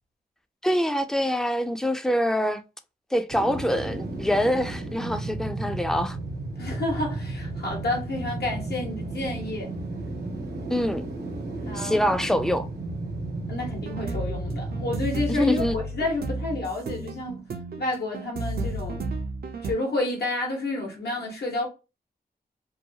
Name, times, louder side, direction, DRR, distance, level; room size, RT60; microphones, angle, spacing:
voice 1, 0.6-2.6 3.1-6.2 10.7-11.0 11.7-12.7 15.3-15.8, equal, 5° left, 0.3 m, -25 dB
sound 1, 3.3-16.3 16.7-16.8, right 2 dB, 85° right, 0.9 m, -34 dB
voice 2, 6.6-9.7 11.6-12.0 13.5-17.5 17.8-19.1 19.6-21.7, left 2 dB, 85° left, 1.1 m, -30 dB
sound 2, 13.8-19.7, right 3 dB, 70° right, 0.5 m, -33 dB
2.7 x 2.2 x 2.7 m
wide cardioid pair, 90°, 16 cm